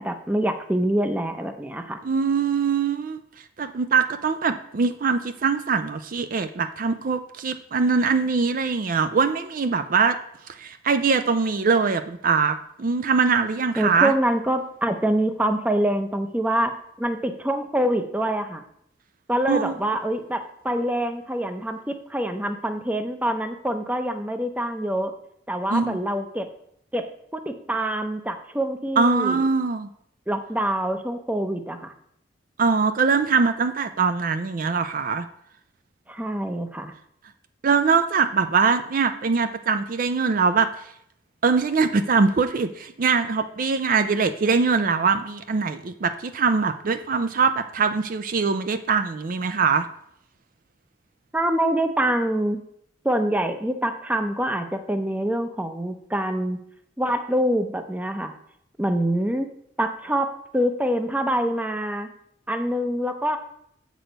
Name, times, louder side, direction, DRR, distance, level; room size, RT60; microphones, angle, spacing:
voice 1, 0.0-2.0 13.8-16.7 17.0-18.6 19.3-25.1 25.5-26.5 26.9-27.0 27.3-29.5 30.3-31.9 36.1-36.9 51.3-52.6 53.0-56.6 57.0-58.3 58.8-59.5 59.8-62.1 62.5-63.4, right 1 dB, 10° right, 7 dB, 0.6 m, -25 dB
voice 2, 2.0-3.2 3.6-10.2 10.5-14.1 19.5-19.7 25.7-26.0 29.0-29.9 32.6-35.3 37.6-40.7 41.4-49.9, right 5 dB, 50° right, 10 dB, 0.4 m, -22 dB
7.8 x 6.2 x 5.2 m, 0.71 s
head